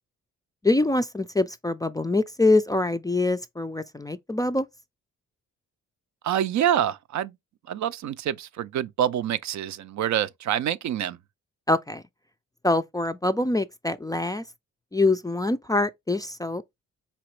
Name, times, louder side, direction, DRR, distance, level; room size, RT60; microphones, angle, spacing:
voice 1, 0.6-4.7 11.7-12.0 12.6-14.4 14.9-16.6, left 2 dB, 10° left, 0.3 m, -24 dB
voice 2, 6.2-7.3 7.7-11.2, right 10 dB, 65° right, 0.5 m, -26 dB
4.1 x 2.9 x 3.1 m
supercardioid pair, 60°, 31 cm